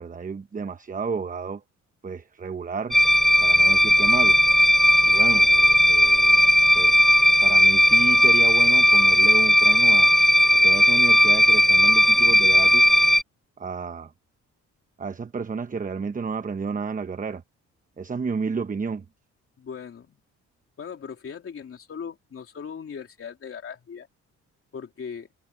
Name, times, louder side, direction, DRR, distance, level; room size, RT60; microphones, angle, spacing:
voice 1, 0.0-1.6 2.0-3.0 3.4-4.4 5.0-6.4 6.7-10.1 10.5-12.9 13.6-14.1 15.0-17.4 18.0-19.0, right 5 dB, 25° right, 1.0 m, -31 dB
sound 1, 2.9-13.2, equal, ahead, 0.5 m, -17 dB
voice 2, 19.6-20.2 20.8-24.1 24.7-25.3, left 6 dB, 45° left, 3.1 m, -39 dB
cardioid pair, 90°, 30 cm